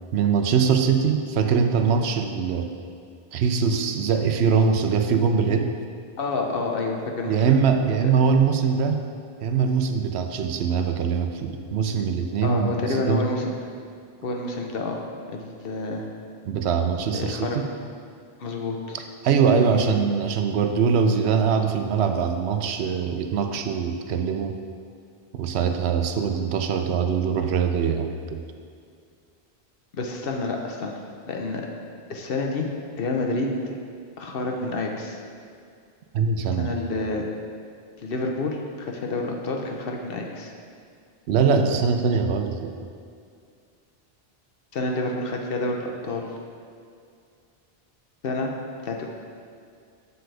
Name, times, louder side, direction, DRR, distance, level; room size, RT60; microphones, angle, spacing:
voice 1, 0.1-2.7 3.3-5.7 7.3-9.0 9.4-13.3 16.5-17.7 18.9-24.6 25.3-28.4 36.1-36.7 41.3-42.7, right 6 dB, 85° right, 6 dB, 0.9 m, -22 dB
voice 2, 6.2-7.6 12.4-13.5 14.2-15.0 15.3-16.0 17.1-17.6 18.4-19.0 19.5-19.9 29.9-31.0 31.3-31.7 32.1-32.7 33.0-33.7 34.2-35.2 36.6-37.3 38.0-40.5 44.7-46.3 48.2-48.5 48.8-49.1, left 2 dB, 65° left, 1 dB, 1.0 m, -28 dB
7.5 x 6.8 x 3.4 m, 2.3 s
omnidirectional pair, 1.1 m